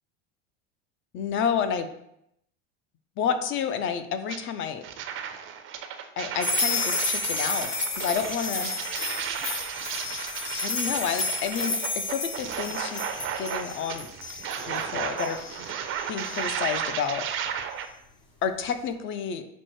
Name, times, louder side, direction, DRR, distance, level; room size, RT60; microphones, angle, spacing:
voice 1, 1.1-1.9 3.2-4.8 6.2-8.7 10.6-13.0 13.4-14.1 14.7-15.6 16.1-17.2 18.4-19.5, left 7 dB, 35° left, 10 dB, 0.4 m, -30 dB
sound 1, 4.3-4.4 4.8-17.9, right 8 dB, 40° right, 0.4 m, -34 dB
sound 2, 6.4-16.8, left 3 dB, 60° left, 1.1 m, -32 dB
5.9 x 2.1 x 3.1 m, 0.78 s
hypercardioid pair, 85°, 35 cm